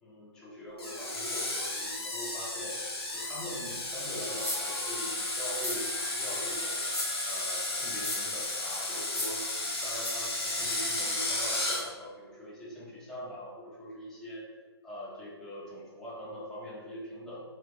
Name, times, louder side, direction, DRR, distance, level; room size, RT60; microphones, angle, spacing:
voice 1, 0.0-2.8 3.1-6.8 7.2-14.4 14.8-17.4, equal, 5° left, -7 dB, 0.4 m, -42 dB
Screech, 0.8-11.8, left 2 dB, 65° left, 1.0 m, -33 dB
Telephone, 4.2-10.0, left 2 dB, 30° left, 1.0 m, -47 dB
sound 1, 4.4-4.8 5.5-6.2 6.9-7.2 7.9-8.3 9.1-9.5 10.0-10.1, left 1 dB, 85° left, 1.2 m, -36 dB
3.2 x 3.1 x 2.4 m, 1.4 s
figure-of-eight pair, 140°, 14 cm